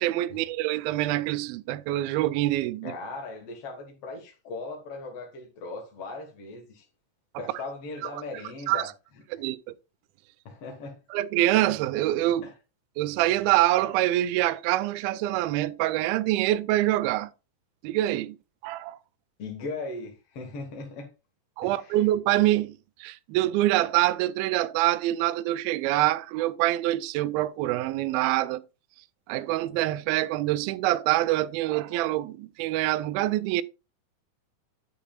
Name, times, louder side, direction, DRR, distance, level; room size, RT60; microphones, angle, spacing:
voice 1, 0.0-2.9 7.3-7.4 8.7-8.9 9.3-9.7 11.1-12.5 13.0-17.3 17.8-18.4 18.6-19.0 21.6-28.6 29.3-33.6, right 15 dB, 85° right, 2.1 m, -25 dB
voice 2, 2.8-6.9 7.4-8.9 9.3-9.4 10.5-11.0 12.4-12.5 19.4-21.1 21.6-22.0, left 3 dB, 55° left, 1.8 m, -38 dB
9.6 x 8.4 x 2.4 m
omnidirectional pair, 4.8 m